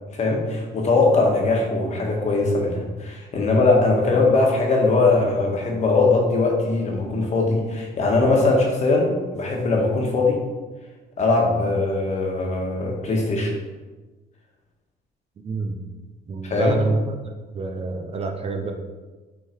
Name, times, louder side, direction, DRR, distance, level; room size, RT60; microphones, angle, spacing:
voice 1, 0.1-10.4 11.2-13.5 16.4-16.8, left 3 dB, 45° left, 0 dB, 1.5 m, -20 dB
voice 2, 15.4-15.8 16.3-17.1 17.5-18.7, right 3 dB, 35° right, 4 dB, 0.7 m, -27 dB
6.0 x 3.8 x 4.5 m, 1.3 s
cardioid pair, 110°, 17 cm